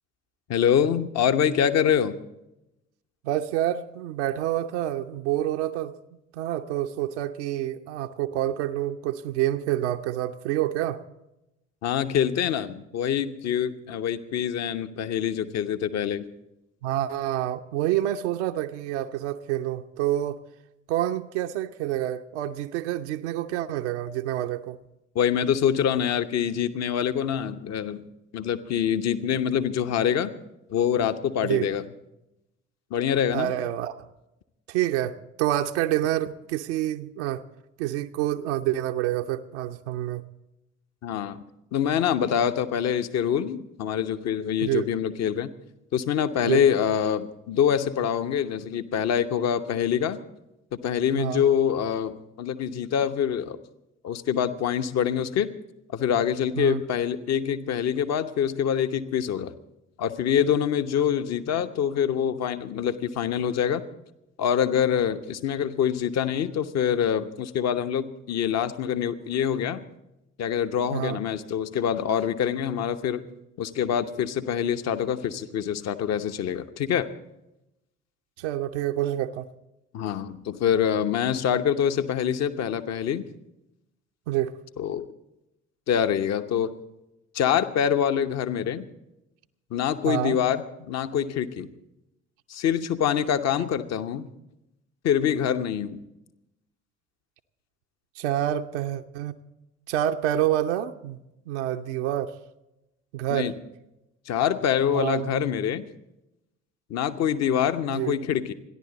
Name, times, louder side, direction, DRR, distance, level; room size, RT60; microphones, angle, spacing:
voice 1, 0.5-2.2 11.8-16.2 25.1-28.0 28.3-30.3 30.7-31.8 32.9-33.5 41.0-41.4 41.7-45.5 45.9-50.2 50.8-53.6 54.0-55.5 55.9-59.5 60.0-63.8 64.4-69.8 70.4-73.2 73.6-77.1 79.9-83.2 84.8-85.1 85.9-86.7 87.3-88.9 89.7-91.7 92.5-94.3 95.0-96.0 103.3-103.5 104.3-105.8 106.9-108.5, left 8 dB, 45° left, 10 dB, 1.0 m, -25 dB
voice 2, 3.2-6.0 6.3-11.0 16.8-20.4 20.9-24.8 31.4-31.7 33.3-34.0 34.7-37.4 37.8-40.2 44.6-44.9 46.4-46.6 51.1-51.4 56.5-56.8 70.9-71.2 78.4-79.5 84.3-84.6 90.0-90.4 98.2-99.4 99.9-101.2 101.5-102.4 103.1-103.5 104.9-105.4 107.9-108.2, right 13 dB, 65° right, 6 dB, 0.8 m, -27 dB
27.5 x 11.0 x 4.0 m, 0.90 s
figure-of-eight pair, 50°, 37 cm